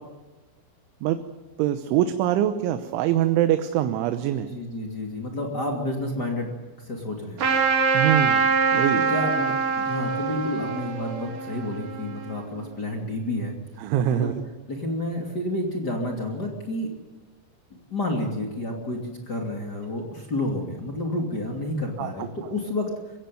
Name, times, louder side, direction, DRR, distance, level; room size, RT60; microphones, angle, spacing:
voice 1, 1.6-4.5 7.9-9.0 13.8-14.4 22.0-22.3, right 11 dB, 85° right, 9 dB, 3.3 m, -24 dB
voice 2, 4.5-6.5 6.8-7.5 9.1-13.5 14.1-14.3 14.7-16.9 17.7-22.9, left 1 dB, 30° left, 1 dB, 2.4 m, -30 dB
Trumpet, 7.4-12.4, right 5 dB, 50° right, 3.5 m, -24 dB
24.5 x 16.0 x 9.3 m, 1.3 s
omnidirectional pair, 5.4 m